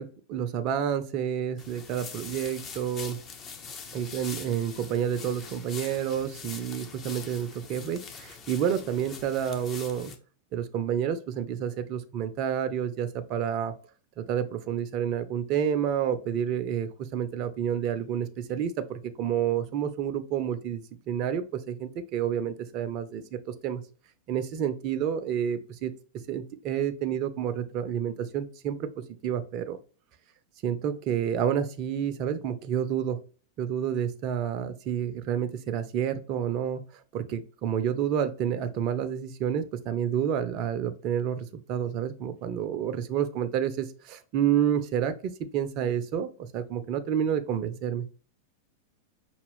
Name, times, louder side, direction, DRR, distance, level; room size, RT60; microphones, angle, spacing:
voice 1, 0.0-3.2 3.9-10.1 10.5-13.7 14.2-23.8 24.3-25.9 26.3-28.9 29.2-29.8 30.6-33.2 33.6-48.1, right 9 dB, 40° right, 9 dB, 0.5 m, -29 dB
sound 1, 1.6-10.2, left 5 dB, 30° left, 0.6 m, -43 dB
5.4 x 2.3 x 3.4 m, 0.38 s
figure-of-eight pair, 90°, 0 cm